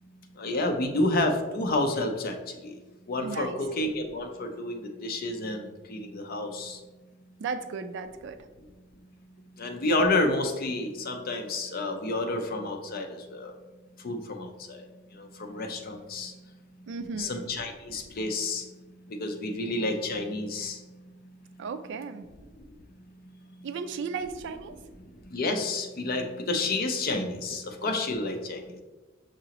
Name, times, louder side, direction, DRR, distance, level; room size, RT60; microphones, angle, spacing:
voice 1, 0.4-2.7 3.1-6.8 9.6-13.5 14.0-14.9 15.1-16.3 17.2-18.7 19.1-20.8 25.3-28.8, left 2 dB, 50° left, 4 dB, 0.5 m, -30 dB
voice 2, 3.1-3.6 7.4-8.4 16.9-17.6 21.6-22.3 23.6-24.8, right 5 dB, 65° right, 9 dB, 0.3 m, -35 dB
6.0 x 2.9 x 2.9 m, 1.2 s
head